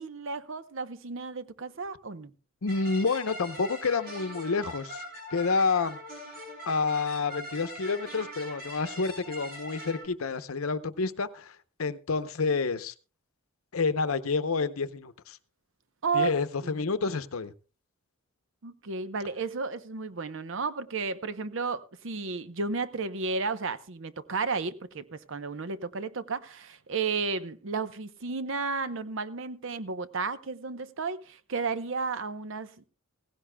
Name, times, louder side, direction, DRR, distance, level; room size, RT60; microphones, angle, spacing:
voice 1, 0.0-2.3 16.0-16.3 16.6-16.7 18.6-32.8, right 4 dB, 65° right, 0.8 m, -33 dB
voice 2, 2.6-5.0 5.3-6.0 6.7-12.9 13.7-15.4 16.1-17.5, left 4 dB, 85° left, 0.7 m, -29 dB
sound 1, 2.7-10.1, equal, 45° right, 6.1 m, -42 dB
17.0 x 16.0 x 2.2 m
head